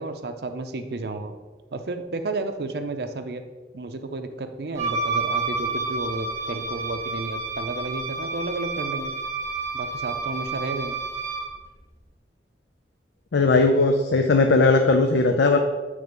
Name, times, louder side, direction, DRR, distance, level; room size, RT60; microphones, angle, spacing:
voice 1, 0.0-1.4 1.7-3.4 3.7-9.1 9.7-11.0, right 3 dB, 60° right, 7 dB, 0.5 m, -32 dB
Wind instrument woodwind instrument, 4.8-11.5, right 3 dB, 15° right, 1.0 m, -30 dB
voice 2, 13.3-15.6, left 3 dB, 80° left, 4 dB, 0.5 m, -18 dB
7.9 x 3.4 x 5.2 m, 1.3 s
head